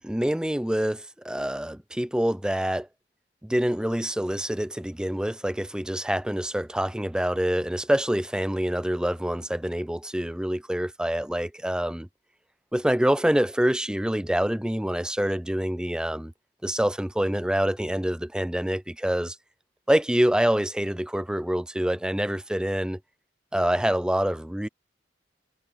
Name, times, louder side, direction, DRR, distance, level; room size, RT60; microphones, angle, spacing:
voice 1, 0.0-2.9 3.4-12.1 12.7-16.3 16.6-19.4 19.9-23.0 23.5-24.7, equal, 5° right, 0.5 m, -26 dB
head